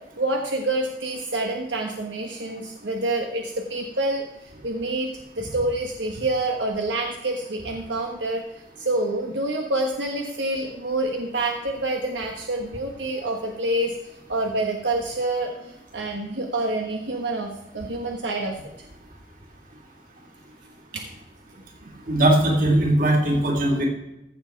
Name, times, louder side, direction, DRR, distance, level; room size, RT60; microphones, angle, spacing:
voice 1, 0.2-18.6 20.9-21.0, right 2 dB, 75° right, 2 dB, 1.2 m, -27 dB
voice 2, 22.1-23.9, right 1 dB, 45° right, 0 dB, 3.0 m, -19 dB
15.0 x 7.2 x 4.6 m, 0.91 s
head